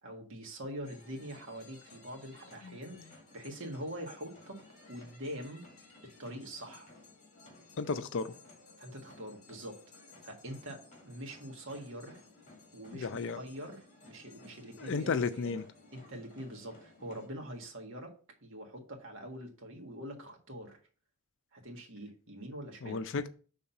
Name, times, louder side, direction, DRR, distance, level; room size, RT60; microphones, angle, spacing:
voice 1, 0.0-4.6 4.9-5.6 6.2-6.9 8.8-12.2 12.7-13.8 14.1-15.1 15.4-15.5 15.9-18.1 18.4-20.8 21.5-23.0, equal, 60° right, 2 dB, 1.6 m, -44 dB
sound 1, 0.8-17.3, left 3 dB, 35° left, 1.9 m, -57 dB
voice 2, 2.6-3.1 7.8-8.3 12.9-13.4 14.8-15.6 22.8-23.3, left 4 dB, 55° left, 11 dB, 0.5 m, -34 dB
5.6 x 3.6 x 5.7 m, 0.40 s
head